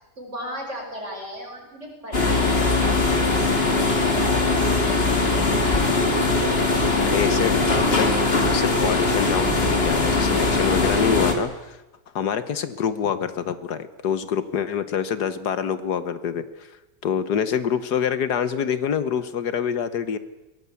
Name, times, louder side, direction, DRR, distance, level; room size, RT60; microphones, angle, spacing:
voice 1, 0.2-5.9, equal, 45° right, 2 dB, 6.1 m, -36 dB
sound 1, 2.1-11.3, left 3 dB, 35° left, 2.6 m, -21 dB
voice 2, 7.0-8.1 8.5-11.8 12.1-16.7 17.0-20.2, left 8 dB, 70° left, 12 dB, 1.6 m, -26 dB
22.0 x 18.0 x 8.4 m, 1.0 s
omnidirectional pair, 1.8 m